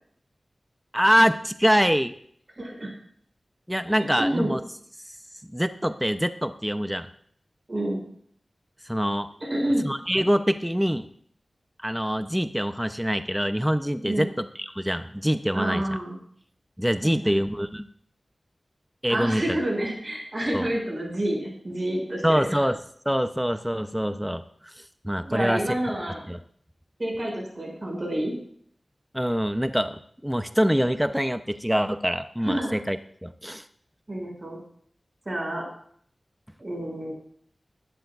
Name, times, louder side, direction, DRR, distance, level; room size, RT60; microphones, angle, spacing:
voice 1, 0.9-2.1 3.7-4.6 5.1-5.2 5.4-7.1 8.9-9.3 9.8-11.1 11.8-15.8 16.8-17.8 19.0-19.4 20.5-20.7 22.2-22.8 23.1-25.6 26.3-26.4 29.1-33.0 33.2-33.7, equal, 5° right, 9 dB, 0.6 m, -25 dB
voice 2, 2.6-2.9 3.9-4.5 7.7-8.0 9.4-9.8 14.0-14.3 15.5-16.2 17.2-17.4 19.1-22.6 25.2-26.2 27.0-28.3 32.4-32.8 34.1-34.6 35.2-35.7 36.6-37.1, right 1 dB, 40° right, -1 dB, 6.0 m, -28 dB
19.5 x 12.0 x 2.4 m, 0.62 s
wide cardioid pair, 55°, 0 cm